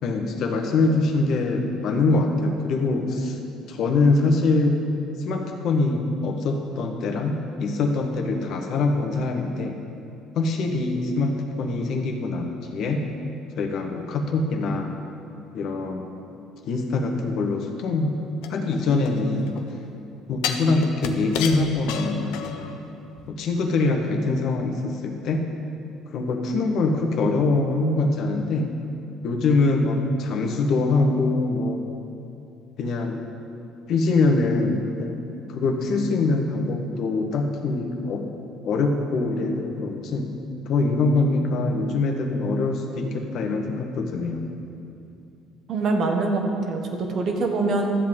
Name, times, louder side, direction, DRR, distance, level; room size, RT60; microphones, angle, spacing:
voice 1, 0.0-3.4 3.7-4.9 5.2-9.8 10.3-13.0 13.6-14.9 15.5-16.1 16.6-18.2 18.5-19.6 20.3-22.7 23.3-25.4 26.1-28.7 29.2-31.8 32.8-33.2 33.9-35.1 35.5-38.3 38.6-40.3 40.7-44.4, left 3 dB, 60° left, 3 dB, 1.2 m, -23 dB
sound 1, 18.4-19.6 20.4-22.8 23.2-23.3, left 8 dB, 85° left, 0.7 m, -31 dB
voice 2, 45.7-48.0, right 3 dB, 50° right, 3 dB, 1.3 m, -24 dB
12.5 x 7.6 x 3.7 m, 2.6 s
cardioid pair, 105°, 0 cm